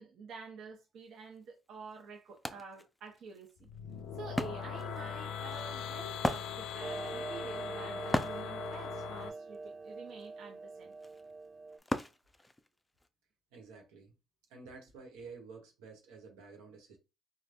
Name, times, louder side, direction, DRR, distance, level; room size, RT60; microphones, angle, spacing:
voice 1, 0.0-3.7 4.2-10.9, right 5 dB, 65° right, 0.8 m, -49 dB
Wood, 1.4-1.5 1.8-13.1, left 1 dB, 10° left, 0.4 m, -40 dB
sound 1, 3.6-9.3, left 8 dB, 85° left, 0.4 m, -41 dB
Clock, 6.8-11.8, right 3 dB, 35° right, 0.6 m, -43 dB
voice 2, 13.5-14.1 14.5-17.0, right 4 dB, 90° right, 1.1 m, -51 dB
3.2 x 2.2 x 2.6 m
supercardioid pair, 70°, 0 cm